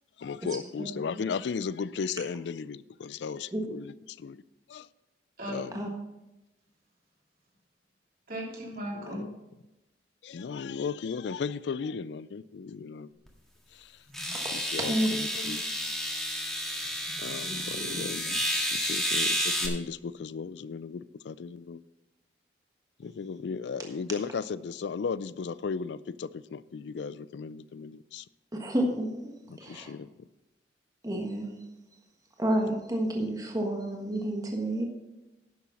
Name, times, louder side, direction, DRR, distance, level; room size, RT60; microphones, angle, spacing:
voice 1, 0.2-4.4 4.7-4.9 5.5-5.8 8.9-9.3 10.2-13.1 13.7-13.9 14.5-15.6 17.2-18.4 18.7-21.8 23.0-28.2 29.5-30.1, left 5 dB, 75° left, 0.4 m, -36 dB
voice 2, 8.3-9.3 14.1-14.5 17.0-18.0, equal, 55° right, 3.3 m, -39 dB
sound 1, 13.3-13.4 14.1-19.7, equal, ahead, 1.7 m, -31 dB
voice 3, 28.6-29.1 29.6-29.9 31.0-31.5 32.4-34.8, right 1 dB, 20° right, 1.4 m, -29 dB
11.0 x 6.9 x 5.8 m
head